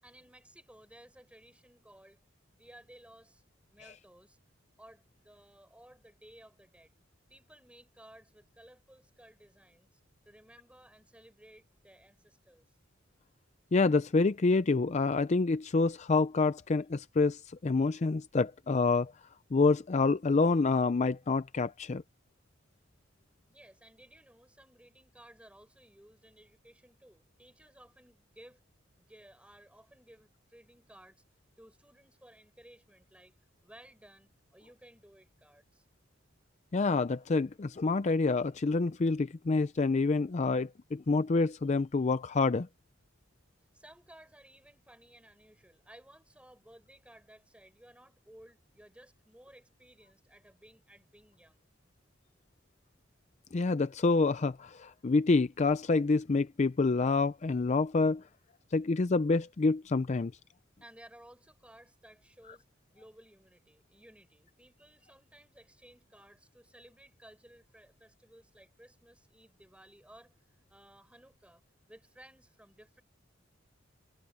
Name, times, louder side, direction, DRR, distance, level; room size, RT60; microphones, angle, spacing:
voice 1, 0.0-2.2 2.5-4.4 4.8-6.9 7.3-10.0 10.3-12.7 23.5-28.6 29.0-31.2 31.6-33.4 33.6-35.9 43.7-51.7 60.8-62.7 62.9-71.6 71.9-73.0, right 1 dB, 5° right, 7.1 m, -57 dB
voice 2, 13.7-19.1 19.5-22.0 36.7-42.7 53.5-58.2 58.7-60.3, left 3 dB, 35° left, 0.5 m, -27 dB
head